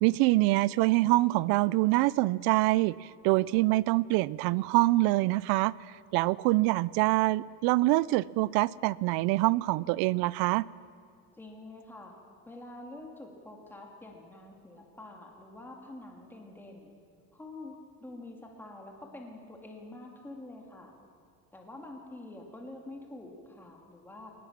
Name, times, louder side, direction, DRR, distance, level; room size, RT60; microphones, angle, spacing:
voice 1, 0.0-3.0 3.2-5.7 6.1-10.7, right 20 dB, 80° right, 22 dB, 0.6 m, -25 dB
voice 2, 11.4-12.1 12.5-16.9 17.3-20.9 21.5-24.3, left 2 dB, 5° left, 0 dB, 2.3 m, -47 dB
20.5 x 19.5 x 7.3 m, 2.2 s
cardioid pair, 170°, 36 cm